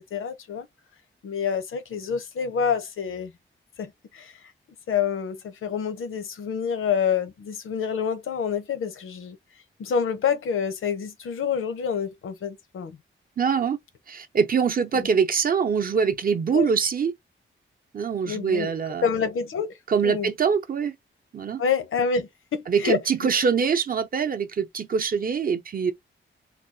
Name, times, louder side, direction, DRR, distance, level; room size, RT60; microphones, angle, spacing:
voice 1, 0.1-0.7 1.2-3.3 3.8-4.3 4.9-9.4 9.8-13.0 16.5-16.7 18.3-18.7 19.0-19.8 20.0-20.3 21.6-23.0, left 6 dB, 85° left, 0.8 m, -27 dB
voice 2, 13.4-13.8 14.1-17.1 17.9-19.1 19.9-20.9 21.3-21.6 22.7-25.9, right 6 dB, 45° right, 0.6 m, -24 dB
4.0 x 2.3 x 2.7 m
wide cardioid pair, 180°, 21 cm